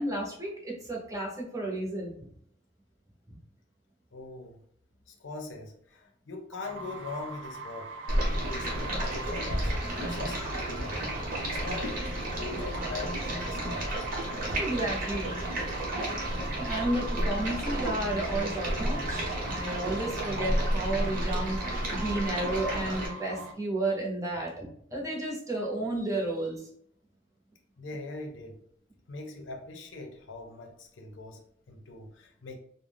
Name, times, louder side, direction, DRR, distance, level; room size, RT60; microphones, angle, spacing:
voice 1, 0.0-2.2 3.3-3.4 14.6-15.3 16.6-26.6, right 2 dB, 20° right, -2 dB, 0.7 m, -32 dB
voice 2, 4.1-4.6 5.1-7.9 8.3-11.0 11.5-13.8 27.8-28.6 29.1-32.6, left 3 dB, 85° left, 3 dB, 0.6 m, -42 dB
sound 1, 6.6-23.5, right 3 dB, 85° right, 0.4 m, -41 dB
Stream, 8.1-23.1, right 1 dB, 50° right, 0.9 m, -32 dB
2.5 x 2.0 x 3.3 m, 0.65 s
head